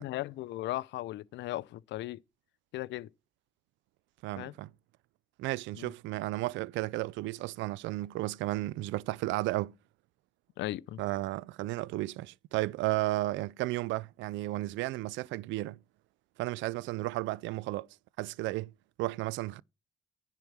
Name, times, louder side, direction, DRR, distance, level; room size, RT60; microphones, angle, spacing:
voice 1, 0.0-2.2 2.7-3.1 4.4-4.5 5.7-5.9 10.6-11.0, left 16 dB, 70° left, 0.6 m, -37 dB
voice 2, 4.2-4.7 5.4-9.7 11.0-15.8 16.4-17.9 18.2-18.7 19.0-19.6, right 18 dB, 75° right, 0.5 m, -33 dB
10.5 x 4.4 x 7.2 m
hypercardioid pair, 50°, 20 cm